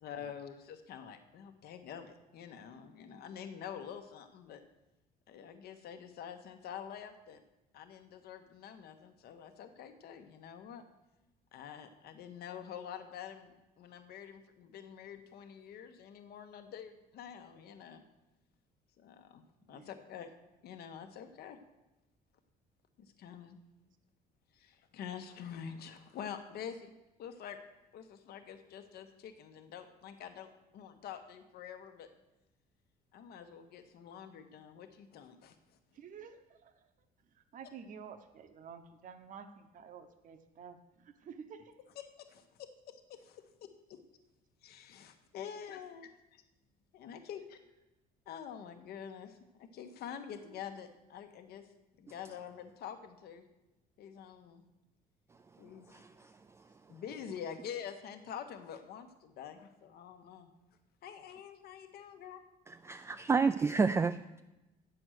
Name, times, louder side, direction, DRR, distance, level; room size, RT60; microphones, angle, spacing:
voice 1, 0.0-4.6 5.3-7.4 7.7-10.8 11.5-18.0 19.0-20.3 20.6-21.6 23.0-23.6 24.5-26.9 27.2-27.6 27.9-32.1 33.1-35.6 42.0-43.4 43.9-44.0 44.6-46.4 46.9-47.6 48.3-51.7 52.0-53.4 54.0-54.6 55.6-56.0 56.9-60.5 61.0-62.4, left 8 dB, 70° left, 7 dB, 1.1 m, -47 dB
voice 2, 35.9-36.8 37.3-41.7 50.4-50.6, right 6 dB, 50° right, 8 dB, 0.9 m, -51 dB
voice 3, 62.7-64.4, right 4 dB, 15° right, 9 dB, 0.3 m, -30 dB
9.1 x 6.9 x 6.4 m, 0.97 s
cardioid pair, 110°, 17 cm